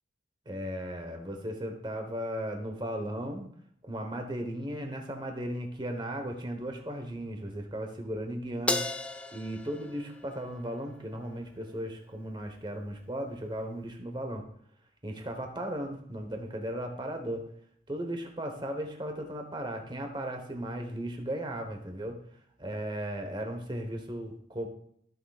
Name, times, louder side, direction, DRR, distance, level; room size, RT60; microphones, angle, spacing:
voice 1, 0.4-3.5 3.8-8.8 9.3-14.5 15.0-17.5 17.9-24.7, right 1 dB, 25° right, 4 dB, 1.2 m, -36 dB
Crash cymbal, 8.7-11.2, left 2 dB, 5° left, 0.3 m, -35 dB
15.0 x 6.5 x 2.4 m, 0.67 s
head